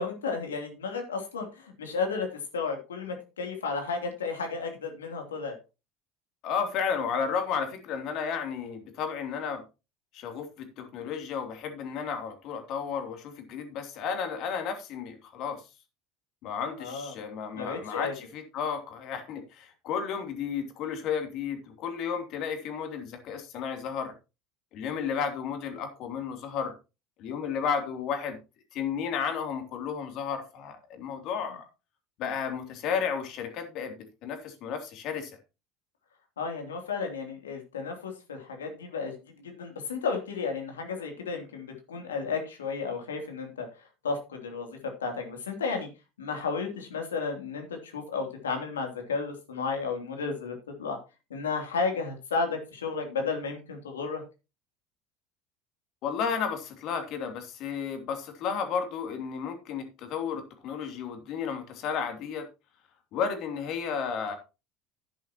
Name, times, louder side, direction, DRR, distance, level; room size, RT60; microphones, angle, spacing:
voice 1, 0.0-2.3 2.5-5.5 16.8-17.2 17.5-18.1 36.4-39.1 39.4-43.7 44.0-45.9 46.2-51.0 51.3-54.2, left 4 dB, 85° left, 3.0 m, -33 dB
voice 2, 6.4-9.6 10.1-15.6 16.4-24.1 24.7-26.7 27.2-28.4 28.7-31.6 32.2-35.3 56.0-62.5 63.1-64.3, left 6 dB, 55° left, 2.9 m, -33 dB
11.0 x 10.5 x 3.0 m
hypercardioid pair, 70°, 0 cm